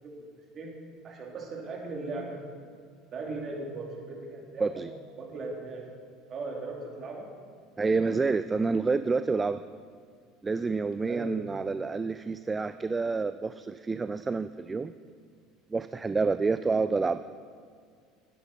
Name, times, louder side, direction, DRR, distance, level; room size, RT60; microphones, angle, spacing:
voice 1, 1.0-2.5 3.1-4.8 5.2-5.8 6.3-7.3 11.1-11.3, right 3 dB, 40° right, -1 dB, 2.8 m, -38 dB
voice 2, 4.6-4.9 7.8-9.6 10.4-14.9 15.7-17.2, right 4 dB, 20° right, 11 dB, 0.3 m, -28 dB
12.0 x 10.0 x 4.2 m, 2.1 s
hypercardioid pair, 75°, 0 cm